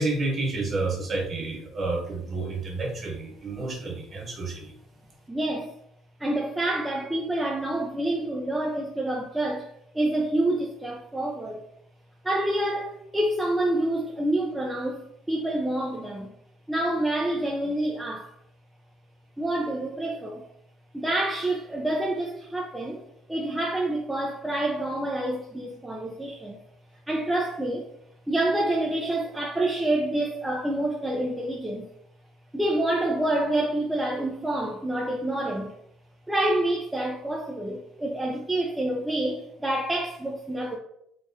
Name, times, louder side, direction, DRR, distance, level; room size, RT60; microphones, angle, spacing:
voice 1, 0.0-4.7, right 3 dB, 30° right, 1.2 m, -30 dB
voice 2, 5.3-5.7 6.2-9.7 9.9-11.6 12.2-16.3 16.7-18.3 19.4-20.4 20.9-23.0 23.3-26.6 27.1-27.9 28.3-31.9 32.5-35.7 36.3-40.8, right 1 dB, 5° right, 0.5 m, -27 dB
4.1 x 2.5 x 3.6 m
cardioid pair, 140°, 0 cm